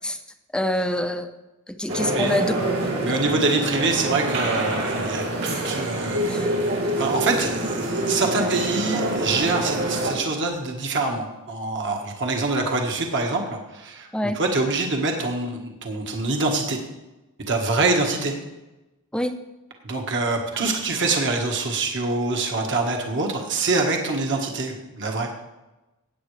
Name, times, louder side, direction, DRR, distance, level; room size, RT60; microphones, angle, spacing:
voice 1, 0.5-1.3 1.7-2.5 2.8-2.9 6.2-6.5 8.3-8.5 14.1-14.4 19.1-19.4, left 1 dB, 5° left, 8 dB, 0.5 m, -26 dB
sound 1, 1.9-10.3, right 1 dB, 90° right, 4.1 m, -26 dB
voice 2, 3.0-14.1 14.3-16.8 17.5-18.3 19.8-25.3, right 3 dB, 55° right, 1 dB, 1.5 m, -25 dB
16.0 x 8.8 x 3.3 m, 1.0 s
head